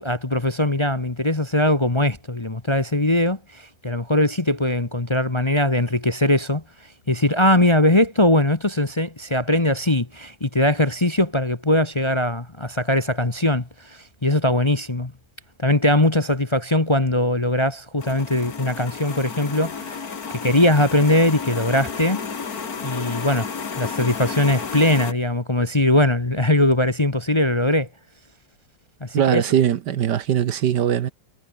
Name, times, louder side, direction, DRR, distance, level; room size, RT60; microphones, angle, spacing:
voice 1, 0.0-6.6 7.1-15.1 15.6-20.0 20.3-22.2 22.8-23.5 23.8-27.9 29.0-29.5, left 1 dB, 20° left, 1.1 m, -20 dB
sound 1, 18.0-25.1, left 5 dB, 50° left, 2.5 m, -32 dB
voice 2, 29.1-31.1, right 9 dB, 65° right, 1.6 m, -20 dB
omnidirectional pair, 2.0 m